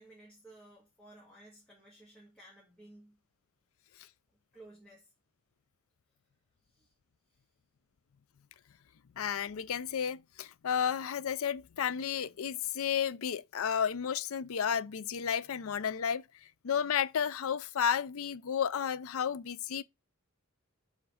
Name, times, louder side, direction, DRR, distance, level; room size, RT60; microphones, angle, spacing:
voice 1, 0.0-3.2 4.5-5.1 6.7-6.9 7.3-7.4, right 1 dB, 5° left, 1.8 m, -56 dB
voice 2, 9.2-16.2 16.6-19.8, left 8 dB, 70° left, 0.4 m, -32 dB
7.1 x 4.0 x 4.8 m
head